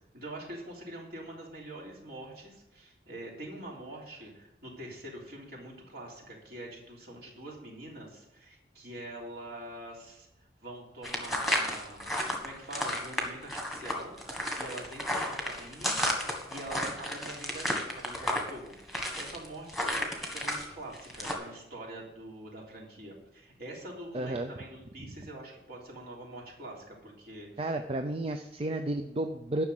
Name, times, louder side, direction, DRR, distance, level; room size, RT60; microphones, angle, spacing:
voice 1, 0.1-10.3 10.6-12.0 12.4-16.0 16.5-27.7, right 1 dB, 55° right, -2 dB, 3.3 m, -45 dB
sound 1, 11.0-20.7 20.9-21.3, left 1 dB, ahead, 1.6 m, -32 dB
voice 2, 24.1-24.5 27.6-29.6, right 1 dB, 30° right, 6 dB, 0.5 m, -32 dB
11.5 x 6.0 x 7.9 m, 0.90 s
head